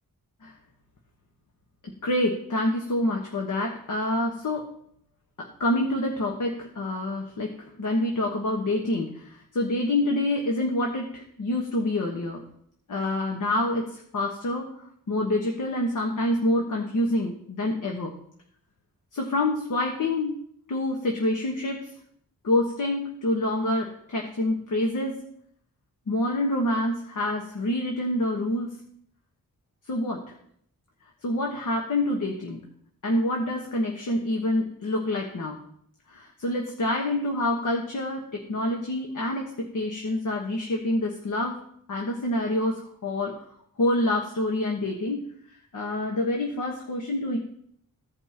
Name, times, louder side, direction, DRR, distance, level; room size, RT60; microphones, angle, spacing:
voice 1, 2.0-4.7 5.4-12.4 12.9-14.7 15.1-18.1 19.1-20.4 20.7-21.9 22.4-25.2 26.1-28.7 29.9-30.3 31.2-32.6 33.0-35.6 36.1-41.6 41.9-43.4 43.8-45.2 45.5-47.4, left 1 dB, 60° left, 1 dB, 1.3 m, -27 dB
15.5 x 5.4 x 2.9 m, 0.66 s
wide cardioid pair, 165°, 34 cm